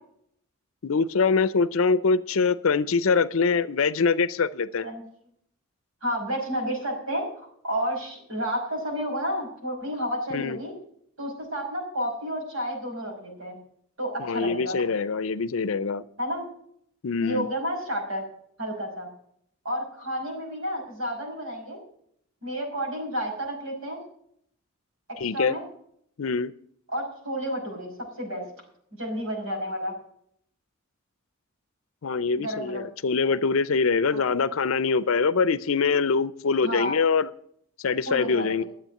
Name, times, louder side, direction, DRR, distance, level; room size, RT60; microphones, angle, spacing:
voice 1, 0.8-4.9 10.3-10.6 14.2-16.0 17.0-17.5 25.2-25.6 26.2-26.5 32.0-37.3 37.8-38.6, left 5 dB, 75° left, 16 dB, 0.5 m, -24 dB
voice 2, 6.0-10.7 11.2-13.6 14.0-14.8 16.2-16.5 17.2-18.2 18.6-19.1 19.6-21.8 22.4-24.0 25.1-25.6 26.9-28.5 28.9-29.9 32.4-32.9 34.1-34.2 36.6-37.0 38.1-38.7, equal, 75° right, 0 dB, 5.5 m, -31 dB
12.0 x 7.9 x 7.7 m, 0.67 s
head